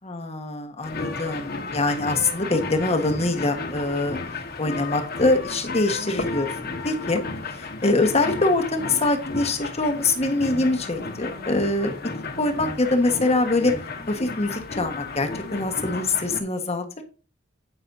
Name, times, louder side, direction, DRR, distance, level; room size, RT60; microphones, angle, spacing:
voice 1, 0.0-4.2 4.6-7.2 7.5-11.9 12.4-13.8 14.1-17.0, left 2 dB, 35° left, 5 dB, 1.5 m, -24 dB
sound 1, 0.8-16.4, left 3 dB, 55° left, 1.5 m, -33 dB
10.0 x 8.7 x 2.7 m, 0.35 s
head